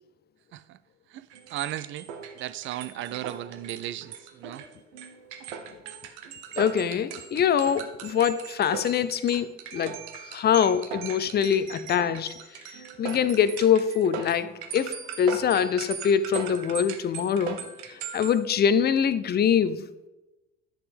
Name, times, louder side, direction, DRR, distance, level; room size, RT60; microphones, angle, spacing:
voice 1, 1.1-2.1 2.3-4.6, right 13 dB, 35° right, 0.4 m, -36 dB
sound 1, 1.3-18.3, right 8 dB, 65° right, 0.9 m, -39 dB
voice 2, 6.6-12.3 13.0-17.6 17.9-19.9, left 8 dB, 25° left, 0.5 m, -24 dB
10.5 x 6.7 x 3.6 m
figure-of-eight pair, 55°, 37 cm